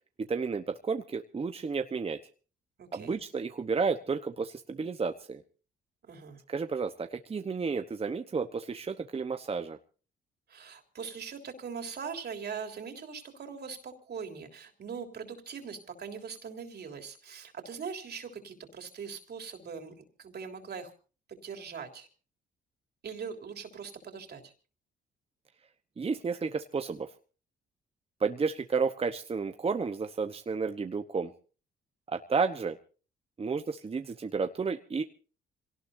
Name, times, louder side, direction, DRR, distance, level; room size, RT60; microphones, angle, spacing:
voice 1, 0.3-2.2 2.9-5.4 6.5-9.8 26.0-27.1 28.2-31.3 32.1-32.8 33.4-35.0, right 5 dB, 30° right, 7 dB, 1.0 m, -32 dB
voice 2, 2.8-3.2 6.1-6.4 10.5-20.9 21.3-22.1 23.0-24.5, right 6 dB, 55° right, 4 dB, 3.5 m, -41 dB
26.5 x 18.0 x 2.7 m, 0.38 s
cardioid pair, 90°, 20 cm